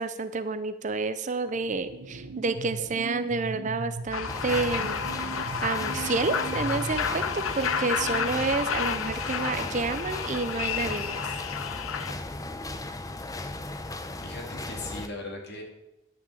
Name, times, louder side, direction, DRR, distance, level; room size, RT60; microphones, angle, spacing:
voice 1, 0.0-5.0 5.6-11.2, right 3 dB, 35° right, 11 dB, 0.5 m, -29 dB
sound 1, 1.5-8.6, right 3 dB, 90° right, 1.1 m, -39 dB
sound 2, 4.1-12.1, left 7 dB, 75° left, 0.7 m, -31 dB
sound 3, 4.3-15.1, left 2 dB, 15° left, 0.5 m, -36 dB
voice 2, 14.2-15.6, left 2 dB, 50° left, 1 dB, 2.3 m, -38 dB
11.0 x 6.0 x 7.6 m, 0.95 s
head